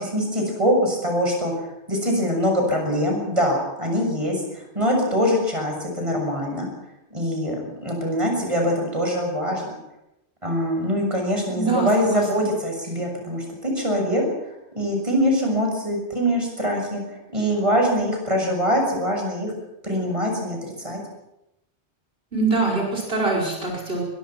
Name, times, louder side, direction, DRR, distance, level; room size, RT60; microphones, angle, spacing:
voice 1, 0.0-6.7 7.1-9.7 10.4-19.5 19.8-21.0, equal, 30° right, 1 dB, 6.8 m, -23 dB
voice 2, 11.5-12.5 22.3-24.0, right 3 dB, 60° right, -1 dB, 5.4 m, -24 dB
23.0 x 23.0 x 6.1 m, 0.86 s
omnidirectional pair, 1.1 m